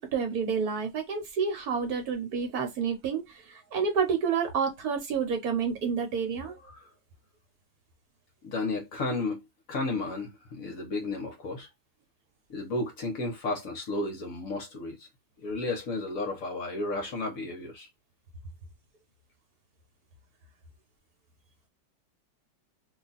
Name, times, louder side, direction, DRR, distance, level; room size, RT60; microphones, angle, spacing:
voice 1, 0.0-6.6, right 6 dB, 65° right, 1.2 m, -29 dB
voice 2, 8.4-9.4 9.7-11.7 12.5-15.1 15.4-17.9, left 2 dB, 55° left, 1.1 m, -33 dB
3.0 x 2.2 x 3.9 m
omnidirectional pair, 1.9 m